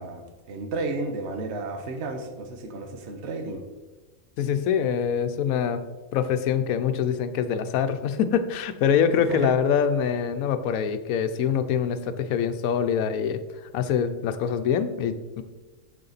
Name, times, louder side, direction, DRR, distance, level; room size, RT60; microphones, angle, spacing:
voice 1, 0.0-3.7 9.1-9.5, right 3 dB, 55° right, 5 dB, 1.1 m, -32 dB
voice 2, 4.4-5.8 6.1-13.4 13.7-15.4, left 7 dB, 80° left, 10 dB, 1.0 m, -24 dB
6.7 x 6.6 x 4.0 m, 1.2 s
omnidirectional pair, 1.5 m